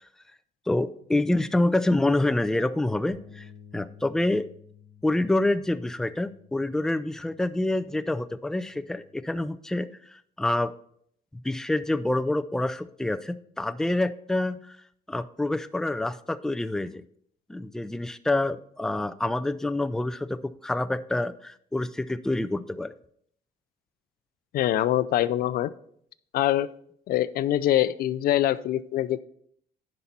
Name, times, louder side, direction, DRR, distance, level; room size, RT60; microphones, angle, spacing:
voice 1, 0.7-4.5 5.0-10.7 11.4-14.8 15.1-17.0 17.5-22.9, left 2 dB, 5° left, 11 dB, 0.3 m, -27 dB
Bass guitar, 3.1-9.3, left 5 dB, 85° right, 1.8 m, -53 dB
voice 2, 24.5-25.7 26.3-26.7 27.1-29.2, left 13 dB, 60° left, 17 dB, 0.5 m, -24 dB
10.0 x 5.5 x 4.2 m, 0.66 s
cardioid pair, 110°, 17 cm